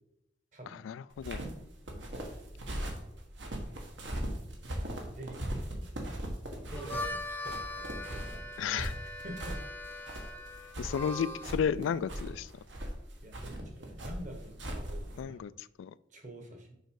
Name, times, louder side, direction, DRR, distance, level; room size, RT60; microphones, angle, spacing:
voice 1, 0.7-1.4 8.6-8.9 10.8-12.5 15.2-15.9, left 7 dB, 80° left, 17 dB, 0.3 m, -33 dB
sound 1, 1.1-15.2, right 1 dB, 70° right, 1.5 m, -39 dB
voice 2, 1.9-2.2 4.7-5.9 6.5-8.6 9.2-9.6 13.2-15.4 16.1-16.8, right 1 dB, 40° right, 3 dB, 1.4 m, -48 dB
Harmonica, 6.6-11.5, left 1 dB, 10° left, 0.8 m, -40 dB
6.6 x 5.2 x 4.7 m, 0.81 s
head